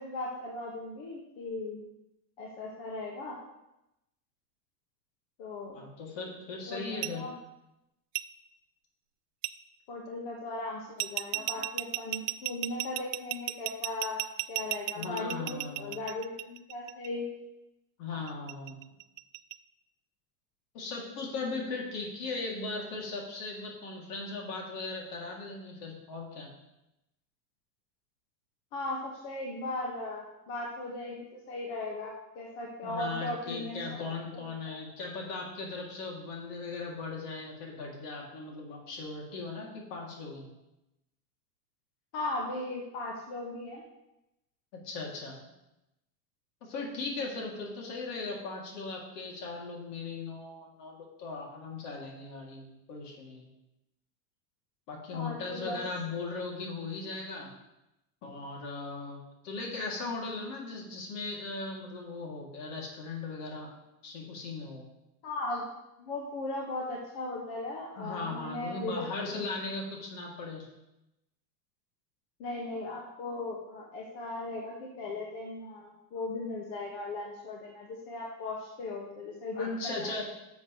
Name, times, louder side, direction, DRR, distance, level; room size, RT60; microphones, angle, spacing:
voice 1, 0.0-1.8 2.4-3.4 5.4-5.8 6.7-7.3 9.9-14.2 14.5-17.3 28.7-34.0 34.3-34.7 42.1-43.8 55.1-55.8 65.2-69.5 72.4-80.2, left 2 dB, 55° left, -2 dB, 1.7 m, -37 dB
voice 2, 5.7-7.2 14.9-15.9 18.0-18.8 20.7-26.5 32.8-40.5 44.8-45.5 46.6-53.5 54.9-57.5 58.2-63.7 64.0-64.8 68.0-70.7 79.5-80.2, left 3 dB, 70° left, -1 dB, 2.8 m, -38 dB
sound 1, 7.0-7.1 8.2-8.3 9.4-9.5 11.0-17.1 18.3-19.5, right 18 dB, 80° right, 0.5 m, -34 dB
10.5 x 7.2 x 3.2 m, 0.90 s
supercardioid pair, 115°, 48 cm